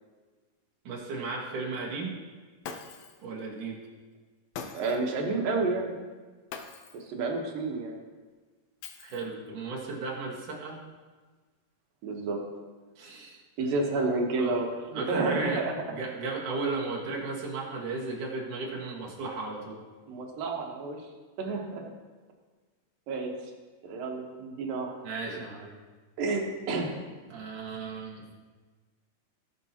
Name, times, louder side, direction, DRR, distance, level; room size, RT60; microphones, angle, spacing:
voice 1, 0.8-2.2 3.2-3.8 9.0-10.8 13.0-13.7 14.4-14.6 14.9-15.6 15.9-19.8 25.0-25.7 27.3-28.2, right 3 dB, 70° right, -2 dB, 3.1 m, -35 dB
Shatter, 2.6-3.3 4.5-5.1 6.5-7.1 8.8-9.5, left 6 dB, 75° left, 1.6 m, -42 dB
voice 2, 4.7-6.0 6.9-8.0 12.0-12.4 13.6-15.7 20.1-21.0 21.4-21.8 23.1-23.3 23.8-24.9 26.2-26.9, right 3 dB, 90° right, 1 dB, 3.0 m, -30 dB
19.5 x 6.8 x 2.9 m, 1.4 s
omnidirectional pair, 3.9 m